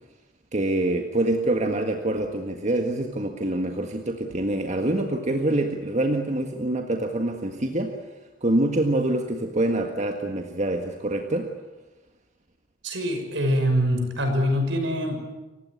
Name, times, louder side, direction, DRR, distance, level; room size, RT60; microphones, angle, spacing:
voice 1, 0.5-8.0 8.4-11.5, right 1 dB, 40° right, 4 dB, 1.8 m, -25 dB
voice 2, 12.8-15.2, equal, 70° right, 5 dB, 6.0 m, -24 dB
28.5 x 16.5 x 9.8 m, 1.1 s
head